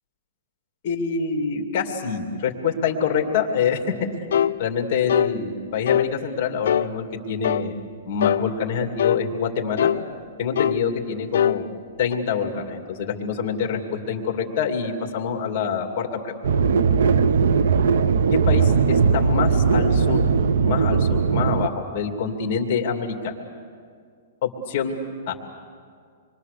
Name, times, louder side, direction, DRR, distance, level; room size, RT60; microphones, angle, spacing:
voice 1, 0.8-3.8 4.6-7.7 8.1-9.9 10.4-11.6 12.0-16.3 18.5-23.3 24.4-25.0 25.3-25.4, left 6 dB, 35° left, 3 dB, 2.5 m, -26 dB
sound 1, 4.3-4.6 5.1-5.3 5.9-6.1 6.7-6.9 7.4-7.7 8.2-8.4 9.0-9.2 9.8-10.0 10.6-10.8 11.3-11.6 12.1-12.2, left 9 dB, 70° left, 0.6 m, -21 dB
sound 2, 16.4-21.7, right 5 dB, 75° right, 0.8 m, -19 dB
27.5 x 23.0 x 6.8 m, 2.1 s
hypercardioid pair, 170°, 0 cm